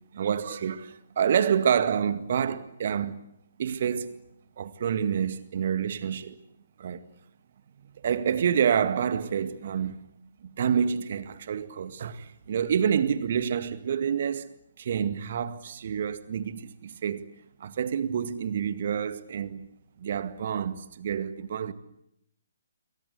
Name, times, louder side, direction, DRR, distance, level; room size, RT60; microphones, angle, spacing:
voice 1, 0.1-3.1 3.6-4.2 4.6-6.4 6.8-7.1 8.0-10.0 10.4-14.5 14.8-17.3 17.6-19.7 20.0-21.7, right 8 dB, 45° right, 2.0 m, -28 dB
28.5 x 23.5 x 8.3 m
figure-of-eight pair, 135°, 0 cm